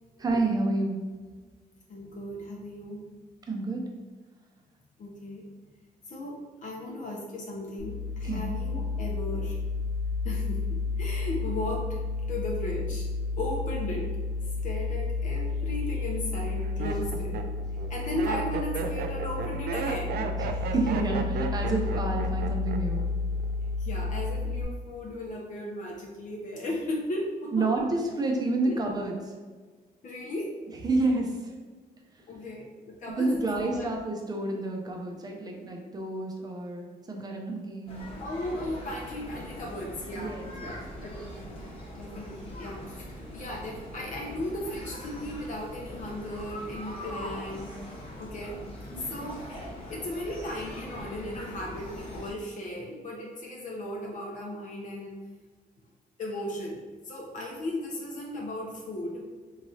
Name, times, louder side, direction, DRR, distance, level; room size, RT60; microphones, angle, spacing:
voice 1, 0.2-1.0 3.5-3.9 8.2-8.4 20.4-23.0 27.5-29.3 30.8-31.7 33.2-38.0 40.1-40.8, right 2 dB, 25° right, 1 dB, 0.6 m, -29 dB
voice 2, 1.9-3.0 5.0-5.4 6.1-9.6 10.2-12.0 12.3-13.1 13.3-14.1 14.6-17.4 17.9-20.3 23.8-27.7 28.6-28.8 30.0-30.5 32.3-33.9 38.2-41.6 41.9-47.7 48.2-48.6 49.1-49.4 49.9-55.2 56.2-59.2, left 1 dB, 50° left, -2 dB, 0.7 m, -36 dB
sound 1, 7.8-24.6, left 3 dB, 70° left, 1.0 m, -31 dB
Laughter, 15.4-15.8 16.4-23.0 23.3-23.8, right 5 dB, 70° right, 0.4 m, -34 dB
sound 2, 37.9-52.3, left 1 dB, 35° left, 1.0 m, -41 dB
3.6 x 3.2 x 2.7 m, 1.4 s
cardioid pair, 115°, 16 cm